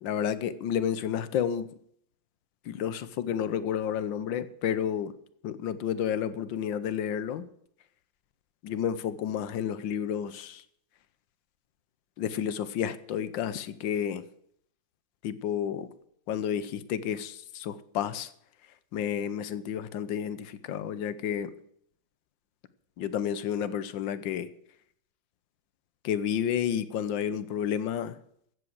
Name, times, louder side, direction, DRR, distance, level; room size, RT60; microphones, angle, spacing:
voice 1, 0.0-1.7 2.6-5.1 5.4-7.5 8.6-10.6 12.2-14.2 15.2-15.9 16.3-18.3 18.9-21.5 23.0-24.5 26.0-28.2, left 9 dB, 80° left, 14 dB, 1.5 m, -31 dB
14.0 x 7.8 x 7.6 m, 0.69 s
omnidirectional pair, 2.1 m